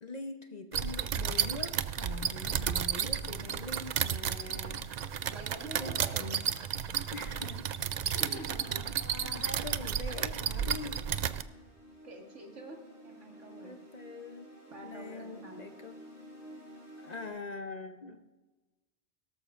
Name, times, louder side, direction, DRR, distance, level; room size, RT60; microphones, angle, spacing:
voice 1, 0.0-4.9 5.8-6.4 7.1-7.7 8.0-11.0 13.6-14.5 14.8-16.0 17.0-18.2, left 3 dB, 45° left, 7 dB, 0.7 m, -43 dB
sound 1, 0.7-11.4, right 8 dB, 60° right, 0.4 m, -33 dB
voice 2, 5.3-6.3 8.1-8.9 12.0-12.8 13.0-13.8 14.7-15.8, right 2 dB, 90° right, 1 dB, 2.3 m, -46 dB
sound 2, 8.5-17.3, equal, 10° right, 4.7 m, -53 dB
17.5 x 13.5 x 2.5 m, 1.2 s
omnidirectional pair, 1.2 m